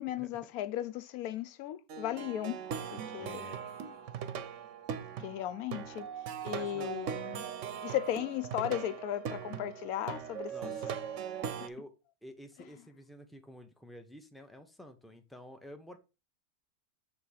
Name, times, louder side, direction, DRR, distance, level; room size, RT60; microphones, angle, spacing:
voice 1, 0.0-2.6 2.9-3.4 5.2-6.1 6.4-7.4 7.8-10.8, left 12 dB, 80° left, 1.1 m, -36 dB
Plucked string instrument, 1.9-11.7, right 8 dB, 65° right, 0.9 m, -40 dB
voice 2, 3.2-3.6 6.5-7.0 10.5-11.0 11.6-11.9 12.2-16.0, equal, ahead, 0.3 m, -50 dB
6.6 x 3.5 x 5.4 m
omnidirectional pair, 1.6 m